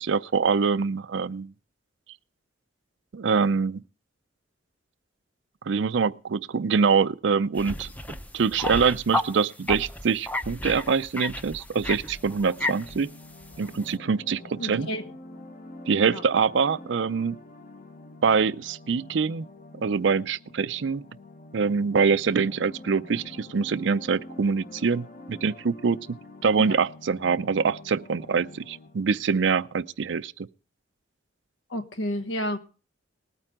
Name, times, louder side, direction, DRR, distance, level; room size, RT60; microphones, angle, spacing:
voice 1, 0.0-1.5 3.1-3.8 5.7-7.9 8.3-13.1 13.6-14.9 15.9-17.4 18.2-19.5 19.8-21.0 21.5-26.2 26.4-30.5, right 5 dB, 65° right, 0.5 m, -24 dB
sound 1, 7.5-9.3 9.7-12.9 13.4-13.7, left 1 dB, 10° left, 0.6 m, -32 dB
sound 2, 11.9-29.2, left 2 dB, 45° left, 1.2 m, -46 dB
voice 2, 14.6-15.0 16.1-16.2 26.7-26.8 31.7-32.6, equal, 75° left, 1.2 m, -30 dB
19.5 x 9.1 x 3.6 m
head